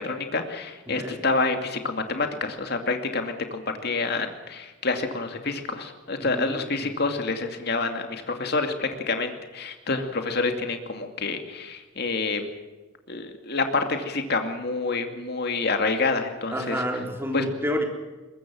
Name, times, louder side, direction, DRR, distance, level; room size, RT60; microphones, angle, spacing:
voice 1, 0.0-12.5 13.1-16.8 17.3-17.4, left 3 dB, 55° left, 5 dB, 2.5 m, -28 dB
voice 2, 0.9-1.2 6.2-6.9 16.5-17.8, equal, 10° right, 2 dB, 3.8 m, -30 dB
22.5 x 21.0 x 6.3 m, 1.2 s
head